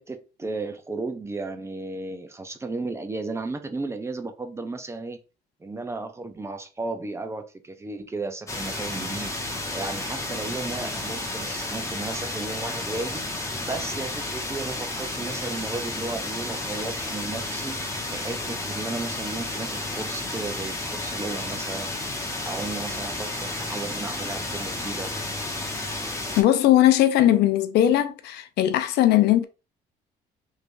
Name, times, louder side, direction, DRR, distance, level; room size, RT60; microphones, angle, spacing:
voice 1, 0.0-5.2 5.6-9.3 9.7-17.8 18.1-21.9 22.4-25.1, right 3 dB, 15° right, 0.5 m, -34 dB
sound 1, 8.5-26.4, left 2 dB, 20° left, 0.9 m, -32 dB
voice 2, 26.4-29.4, left 12 dB, 75° left, 0.5 m, -19 dB
3.3 x 3.2 x 2.5 m
cardioid pair, 110°, 17 cm